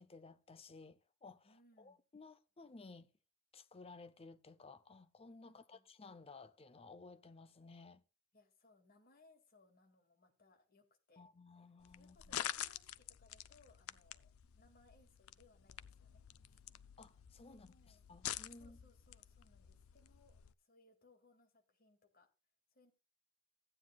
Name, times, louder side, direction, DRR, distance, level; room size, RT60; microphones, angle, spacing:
voice 1, 0.0-3.1 3.5-8.0 11.2-12.2 17.0-17.7 18.1-18.8, left 3 dB, 25° left, 0.6 m, -56 dB
voice 2, 1.4-2.0 5.4-5.8 8.3-11.3 11.9-16.7 17.5-18.1 18.6-22.3 22.7-22.9, left 2 dB, 45° left, 2.1 m, -69 dB
sound 1, 11.8-20.5, left 11 dB, 75° left, 0.5 m, -48 dB
15.0 x 9.4 x 2.3 m
head